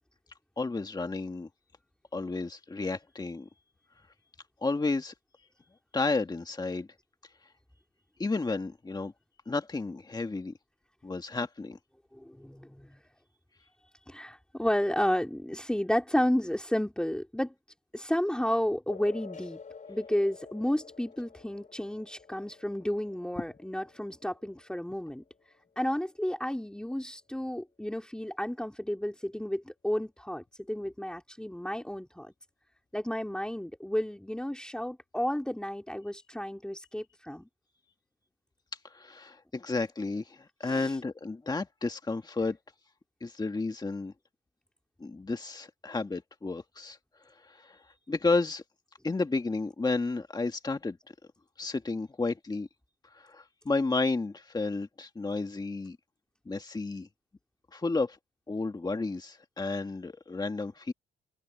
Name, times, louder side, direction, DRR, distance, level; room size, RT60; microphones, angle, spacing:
voice 1, 0.6-1.5 2.1-3.5 4.6-5.1 5.9-6.9 8.2-9.1 9.4-10.5 11.0-11.8 38.8-42.6 43.2-44.1 45.0-47.0 47.4-47.8 48.1-48.6 49.0-51.0 51.6-52.7 53.1-56.0 56.5-57.1 57.7-58.2 58.5-60.9, left 3 dB, 20° left, 1.7 m, -32 dB
voice 2, 12.1-13.0 14.1-17.5 17.9-19.6 19.9-25.2 25.8-32.3 32.9-37.5 40.6-40.9, equal, 5° left, 3.1 m, -32 dB
sound 1, 18.9-25.9, left 5 dB, 40° left, 5.0 m, -49 dB
cardioid pair, 90°, 20 cm